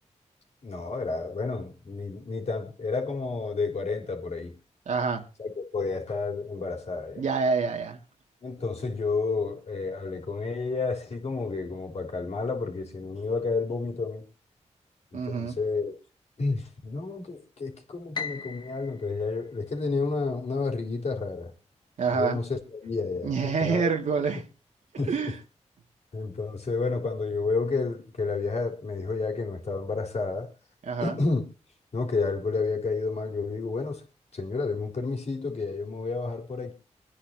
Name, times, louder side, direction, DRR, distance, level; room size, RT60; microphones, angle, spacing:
voice 1, 0.6-4.6 5.4-7.2 8.4-14.3 15.1-16.0 16.4-21.5 22.1-23.9 25.0-25.3 26.1-30.5 31.0-31.4 31.9-34.0 34.3-36.7, left 4 dB, 60° left, 3.8 m, -30 dB
voice 2, 4.9-5.2 7.2-8.0 15.1-15.6 22.0-22.4 23.2-24.4 25.1-25.4 30.9-31.1, right 5 dB, 80° right, 2.1 m, -27 dB
Piano, 18.1-20.4, left 5 dB, 35° left, 1.4 m, -39 dB
25.5 x 9.9 x 2.8 m
cardioid pair, 75°, 12 cm